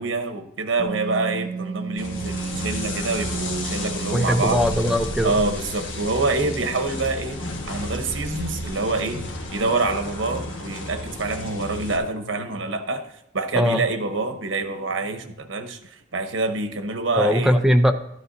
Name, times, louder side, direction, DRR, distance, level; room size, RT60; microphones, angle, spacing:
voice 1, 0.0-4.6 5.2-7.4 7.7-13.0 13.3-15.8 16.1-17.5, right 3 dB, 80° right, 7 dB, 1.0 m, -26 dB
Wind instrument woodwind instrument, 0.8-5.2, right 5 dB, 55° right, 1.1 m, -33 dB
sound 1, 2.0-12.0, left 1 dB, 80° left, 1.3 m, -32 dB
voice 2, 4.1-5.3 13.5-13.8 17.2-17.9, equal, 5° right, 5 dB, 0.6 m, -20 dB
13.0 x 9.5 x 2.7 m, 0.81 s
head